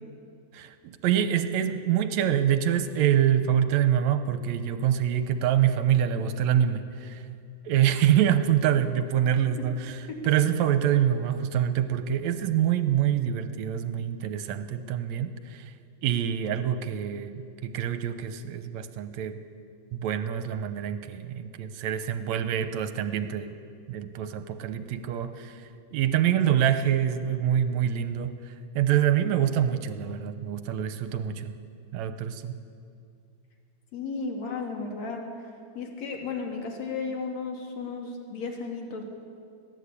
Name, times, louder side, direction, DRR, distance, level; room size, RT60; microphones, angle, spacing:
voice 1, 0.5-7.2 7.7-10.0 10.2-15.7 16.0-19.4 19.9-23.6 23.9-25.5 25.9-28.3 28.8-31.5 31.9-32.5, right 10 dB, 70° right, 10 dB, 2.0 m, -25 dB
voice 2, 33.9-35.5 35.8-39.0, left 4 dB, 60° left, 1 dB, 3.5 m, -34 dB
21.5 x 15.0 x 8.4 m, 2.4 s
omnidirectional pair, 3.6 m